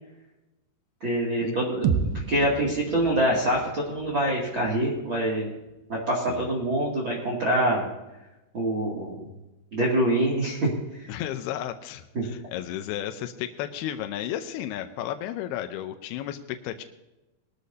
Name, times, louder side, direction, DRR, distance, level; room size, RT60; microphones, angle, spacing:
voice 1, 1.0-1.9 2.3-5.5 5.9-7.9 8.5-9.3 9.7-10.7 12.1-12.2, right 1 dB, 35° right, -5 dB, 2.7 m, -25 dB
sound 1, 1.8-5.8, right 6 dB, 80° right, 2.7 m, -32 dB
voice 2, 11.1-16.8, left 11 dB, 80° left, 7 dB, 2.7 m, -33 dB
21.0 x 13.0 x 2.8 m, 1.0 s
omnidirectional pair, 4.7 m